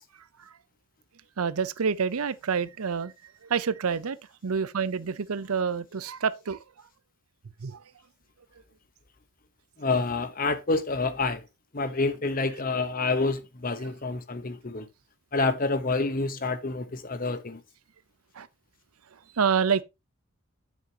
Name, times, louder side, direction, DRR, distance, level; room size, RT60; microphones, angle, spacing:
voice 1, 0.2-0.6 1.4-6.6 7.6-7.8 13.8-13.9 18.3-18.5 19.1-19.8, right 6 dB, 90° right, 0.6 m, -28 dB
voice 2, 9.8-11.4 11.7-14.9 15.3-17.6, left 3 dB, 40° left, 0.9 m, -28 dB
9.1 x 7.5 x 2.8 m
head